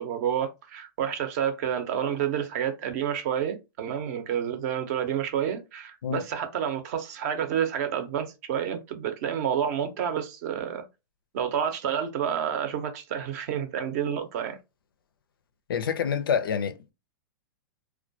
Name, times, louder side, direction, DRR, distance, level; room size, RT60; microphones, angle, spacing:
voice 1, 0.0-10.9 11.3-14.6, right 9 dB, 50° right, 0.5 m, -29 dB
voice 2, 15.7-16.9, left 7 dB, 90° left, 0.5 m, -27 dB
2.2 x 2.1 x 2.6 m
hypercardioid pair, 140°, 11 cm